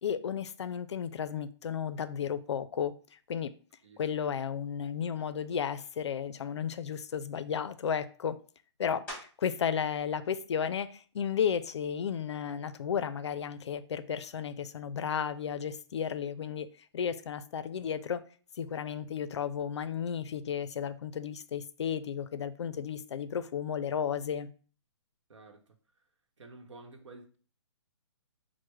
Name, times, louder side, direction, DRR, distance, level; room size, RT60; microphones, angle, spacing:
voice 1, 0.0-3.5 4.0-8.4 8.8-18.2 18.6-24.5, left 7 dB, 70° left, 0.4 m, -33 dB
sound 1, 9.1-9.7 10.2-14.6 15.2-20.3 20.6-26.3, equal, 10° left, 1.4 m, -56 dB
voice 2, 25.3-25.8 26.4-27.4, right 3 dB, 80° right, 0.9 m, -51 dB
6.0 x 2.1 x 3.1 m
hypercardioid pair, 160°, 15 cm